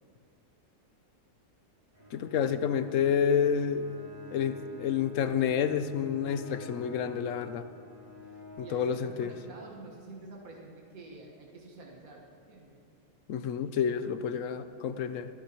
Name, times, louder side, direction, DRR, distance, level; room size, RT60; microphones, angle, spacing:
Bowed string instrument, 1.9-10.1, left 4 dB, 35° right, 3.9 m, -49 dB
voice 1, 2.1-3.9 4.3-7.7 8.6-9.3 13.3-15.3, left 7 dB, 65° left, 11 dB, 0.9 m, -29 dB
voice 2, 8.6-12.8, right 3 dB, 70° right, -2 dB, 1.9 m, -48 dB
27.5 x 10.5 x 3.0 m, 2.3 s
omnidirectional pair, 1.5 m